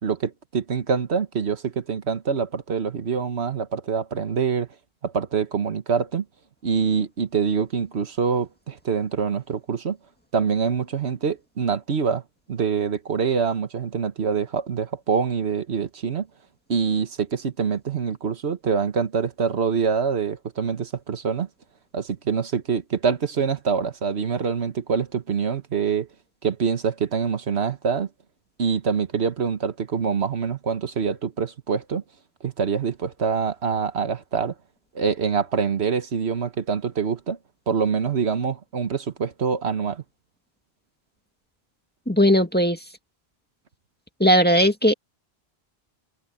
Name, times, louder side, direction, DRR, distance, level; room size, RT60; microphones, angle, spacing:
voice 1, 0.0-4.7 5.0-6.2 6.6-10.0 10.3-12.2 12.5-16.3 16.7-21.5 21.9-26.1 26.4-28.1 28.6-32.0 32.4-34.5 34.9-37.4 37.7-40.0, right 6 dB, 85° right, 1.5 m, -25 dB
voice 2, 42.1-42.8 44.2-44.9, equal, 10° left, 1.8 m, -18 dB
omnidirectional pair, 1.1 m